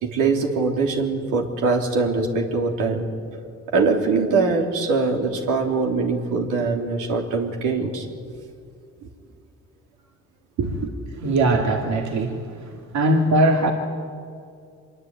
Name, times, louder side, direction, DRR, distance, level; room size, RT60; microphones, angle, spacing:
voice 1, 0.0-3.0 3.7-8.1 10.6-10.7, right 4 dB, 90° right, 2 dB, 3.4 m, -22 dB
voice 2, 11.1-13.7, right 1 dB, 65° right, 2 dB, 2.5 m, -21 dB
25.5 x 22.5 x 9.2 m, 2.3 s
cardioid pair, 90°, 30 cm